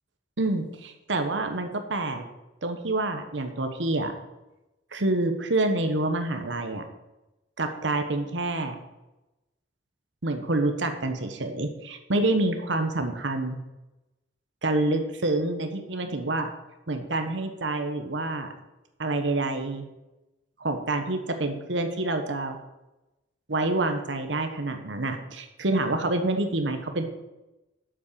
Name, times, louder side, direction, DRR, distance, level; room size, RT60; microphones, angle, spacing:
voice 1, 0.4-2.2 2.6-4.1 4.9-6.8 7.6-8.7 10.2-13.6 14.6-16.5 16.9-18.5 19.0-19.9 20.6-22.6 23.5-27.0, right 2 dB, 80° right, 6 dB, 1.2 m, -27 dB
8.7 x 7.4 x 6.9 m, 1.0 s
head